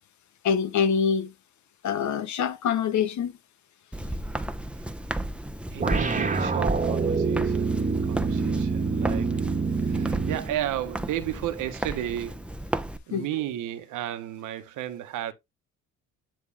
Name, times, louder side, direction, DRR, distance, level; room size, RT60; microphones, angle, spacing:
voice 1, 0.4-1.3 1.8-3.4 13.1-13.2, left 7 dB, 70° left, 1.3 m, -25 dB
Walk footsteps, 3.9-13.0, right 1 dB, 5° right, 0.9 m, -34 dB
voice 2, 5.7-9.5 9.8-12.4 13.1-15.3, right 12 dB, 90° right, 1.5 m, -33 dB
sound 1, 5.8-10.5, right 4 dB, 25° right, 1.5 m, -26 dB
10.5 x 3.5 x 3.6 m
cardioid pair, 90°, 30 cm